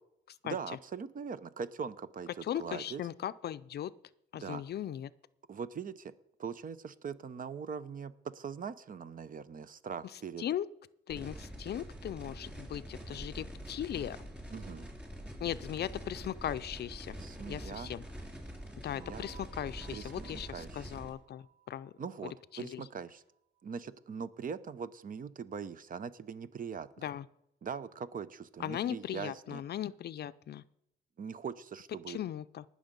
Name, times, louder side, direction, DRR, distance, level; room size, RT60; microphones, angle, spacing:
voice 1, 0.4-3.0 4.3-4.6 5.5-6.1 6.4-10.4 14.5-14.9 17.2-17.9 18.9-19.3 19.9-20.9 22.0-23.2 23.6-26.9 27.6-29.6 31.2-32.2, right 6 dB, 45° right, 15 dB, 0.8 m, -41 dB
voice 2, 2.4-3.9 4.3-5.1 10.4-10.7 11.1-14.2 15.4-17.2 17.5-18.0 18.8-21.9 22.5-22.8 27.0-27.3 28.6-30.6 32.1-32.6, left 10 dB, 55° left, 15 dB, 0.5 m, -38 dB
sound 1, 11.1-21.1, equal, 5° right, 3.5 m, -45 dB
sound 2, 19.0-23.6, right 9 dB, 75° right, 1.6 m, -60 dB
19.0 x 6.4 x 5.3 m, 0.79 s
cardioid pair, 90°, 20 cm